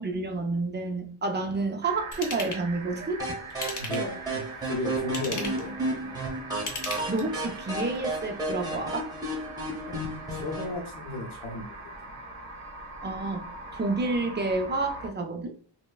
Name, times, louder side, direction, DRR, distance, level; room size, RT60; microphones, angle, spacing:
voice 1, 0.0-3.2 5.3-5.4 7.1-9.1 13.0-15.5, right 3 dB, 25° right, 0.4 m, -29 dB
sound 1, 1.8-15.1, right 2 dB, 90° right, 0.7 m, -42 dB
Ratchet pawl / Tools, 2.1-2.6 3.5-4.2 5.0-5.7 6.5-7.4 7.9-8.0, left 3 dB, 40° left, 0.7 m, -36 dB
sound 2, 3.2-10.8, right 1 dB, 10° right, 0.8 m, -33 dB
voice 2, 3.8-6.2 9.9-10.0 10.3-11.7 12.0-12.2, left 2 dB, 75° left, 0.7 m, -35 dB
3.0 x 2.1 x 2.2 m
wide cardioid pair, 105°, 49 cm